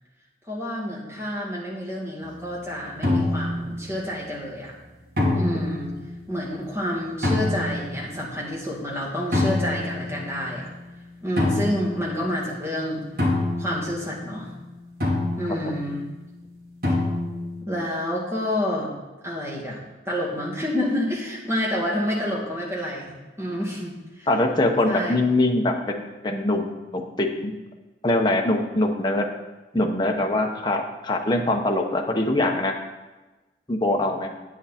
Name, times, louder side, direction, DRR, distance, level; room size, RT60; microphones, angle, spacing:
voice 1, 0.5-4.7 5.3-5.9 6.3-10.7 11.2-13.0 13.6-14.5 15.4-16.0 17.6-18.9 19.2-19.8 20.1-24.3 24.9-25.1, left 1 dB, 15° right, -5 dB, 2.2 m, -28 dB
sound 1, 2.2-2.5 3.0-3.9 5.2-6.1 7.2-8.0 9.3-10.6 11.4-12.5 13.2-14.4 15.0-16.0 16.8-17.6, left 2 dB, 50° right, 2.6 m, -26 dB
voice 2, 24.3-27.5 28.0-29.3 29.7-32.7 33.7-34.3, left 2 dB, 25° left, 1 dB, 0.9 m, -23 dB
9.0 x 8.5 x 4.3 m, 1.1 s
head